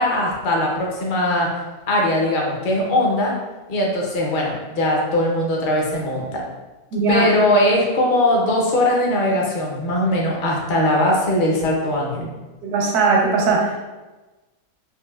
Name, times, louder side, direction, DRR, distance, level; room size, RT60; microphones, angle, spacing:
voice 1, 0.0-1.5 1.9-3.3 3.7-6.4 7.1-12.3, left 1 dB, 45° left, -2 dB, 0.7 m, -20 dB
voice 2, 6.9-7.3 12.6-13.8, right 3 dB, 80° right, -1 dB, 1.3 m, -19 dB
5.4 x 2.5 x 2.3 m, 1.2 s
omnidirectional pair, 1.6 m